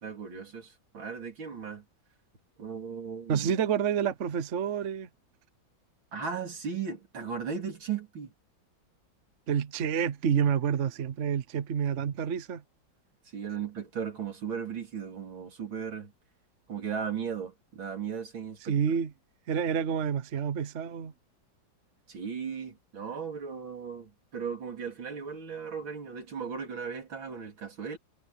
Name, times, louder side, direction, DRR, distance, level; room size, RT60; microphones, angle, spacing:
voice 1, 0.0-1.8 2.6-3.5 6.1-8.3 13.3-16.1 16.7-18.7 22.1-28.0, right 6 dB, 75° right, 4.0 m, -36 dB
voice 2, 3.3-5.1 9.5-12.6 18.7-19.1 19.5-21.1, right 7 dB, 50° right, 1.0 m, -28 dB
omnidirectional pair, 2.2 m